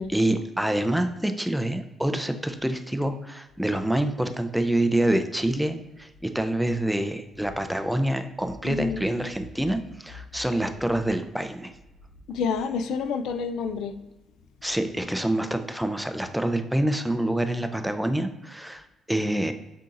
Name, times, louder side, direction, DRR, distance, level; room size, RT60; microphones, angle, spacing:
voice 1, 0.0-11.7 14.6-19.5, right 1 dB, 5° right, 8 dB, 0.4 m, -26 dB
voice 2, 8.6-9.0 12.3-14.0, left 5 dB, 80° left, 9 dB, 0.3 m, -28 dB
7.6 x 2.8 x 2.5 m, 1.0 s
cardioid pair, 90°, 0 cm